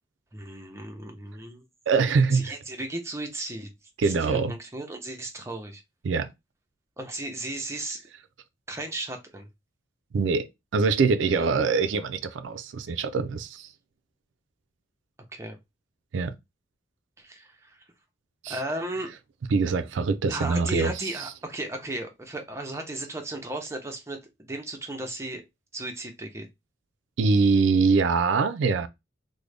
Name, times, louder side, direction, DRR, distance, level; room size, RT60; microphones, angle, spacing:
voice 1, 0.3-1.7 2.3-3.7 4.0-5.8 7.0-8.1 8.7-9.5 11.4-11.5 15.3-15.6 17.2-17.8 18.5-19.1 20.3-25.4 25.7-26.5, right 1 dB, 15° right, 0.6 m, -35 dB
voice 2, 1.9-2.5 4.0-4.5 6.0-6.3 10.1-13.7 16.1-16.3 18.4-18.6 19.5-20.9 27.2-28.9, right 4 dB, 80° right, 0.4 m, -23 dB
3.7 x 2.1 x 3.3 m
head